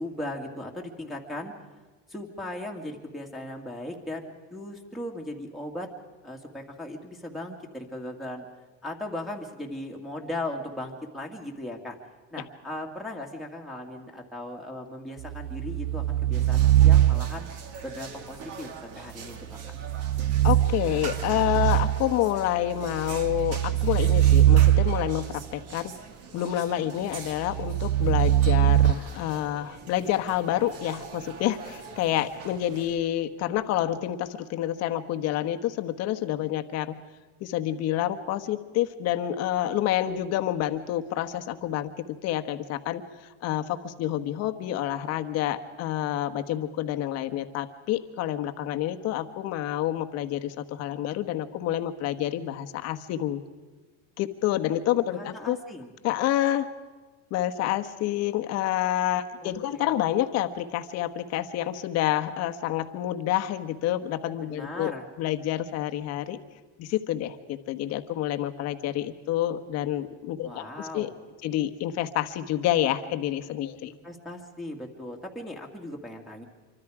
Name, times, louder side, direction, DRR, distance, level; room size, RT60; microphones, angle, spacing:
voice 1, 0.0-1.5 2.1-5.9 6.2-8.5 8.8-12.0 12.3-17.5 17.8-19.5 55.1-55.9 59.4-59.9 64.4-65.1 70.4-71.1 73.8-76.4, left 1 dB, ahead, -2 dB, 2.1 m, -38 dB
sound 1, 15.2-17.6 19.7-22.2 22.9-25.4 27.4-28.9, right 12 dB, 80° right, 0.7 m, -22 dB
sound 2, 16.3-33.0, right 5 dB, 40° right, 2.4 m, -43 dB
voice 2, 20.4-25.9 26.3-37.0 37.4-53.4 54.2-55.6 56.0-56.7 57.3-64.9 65.2-66.4 66.8-71.1 71.4-73.9, left 12 dB, 45° left, 9 dB, 1.3 m, -28 dB
26.5 x 24.5 x 4.9 m, 1.3 s
supercardioid pair, 145°, 36 cm